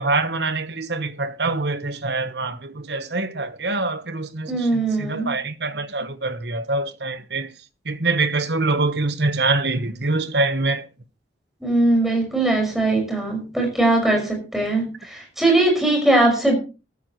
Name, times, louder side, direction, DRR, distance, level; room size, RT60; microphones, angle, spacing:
voice 1, 0.0-7.5 7.8-10.9, right 3 dB, 65° right, 1.2 m, -24 dB
voice 2, 4.5-5.3 11.6-16.5, right 2 dB, ahead, 5.6 m, -20 dB
15.0 x 13.5 x 3.1 m
head